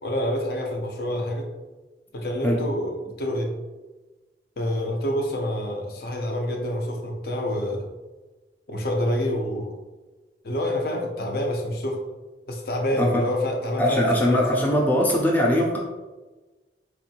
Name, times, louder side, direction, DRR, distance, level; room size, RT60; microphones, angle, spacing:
voice 1, 0.0-1.5 2.1-3.5 4.6-7.9 8.7-9.7 10.4-12.0 12.5-14.4, left 1 dB, 55° left, 2 dB, 0.6 m, -27 dB
voice 2, 13.8-15.8, equal, 10° left, -2 dB, 0.4 m, -21 dB
4.4 x 2.6 x 2.7 m, 1.2 s
head